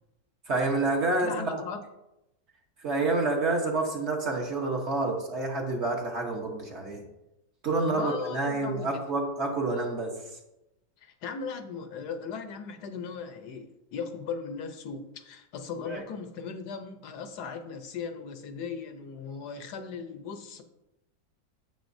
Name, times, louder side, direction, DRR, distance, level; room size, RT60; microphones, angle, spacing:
voice 1, 0.5-1.6 2.8-7.0 7.6-10.1 15.9-16.0, right 3 dB, 45° right, 1 dB, 1.2 m, -28 dB
voice 2, 1.1-1.8 7.8-8.9 11.0-20.6, left 5 dB, 70° left, 7 dB, 1.3 m, -38 dB
9.2 x 7.6 x 2.6 m, 0.90 s
omnidirectional pair, 1.9 m